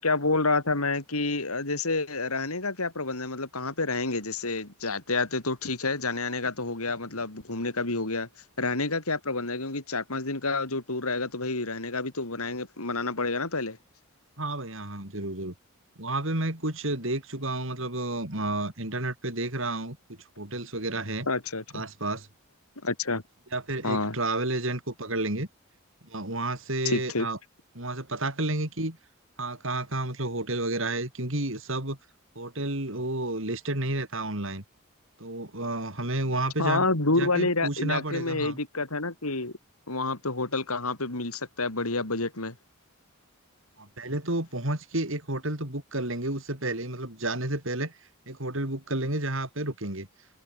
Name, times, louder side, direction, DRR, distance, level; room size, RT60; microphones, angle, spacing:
voice 1, 0.0-8.3 8.6-13.8 21.3-21.8 22.8-23.2 23.8-24.2 26.8-27.3 36.6-39.5 39.9-42.5, left 3 dB, 90° left, 4.0 m, -29 dB
voice 2, 14.4-15.5 16.0-21.3 21.7-22.3 23.5-25.5 26.0-27.4 27.7-29.0 29.4-32.0 32.3-34.6 35.2-36.9 37.2-38.6 43.8-47.9 48.3-50.1, right 2 dB, 65° right, 4.5 m, -31 dB
open air
head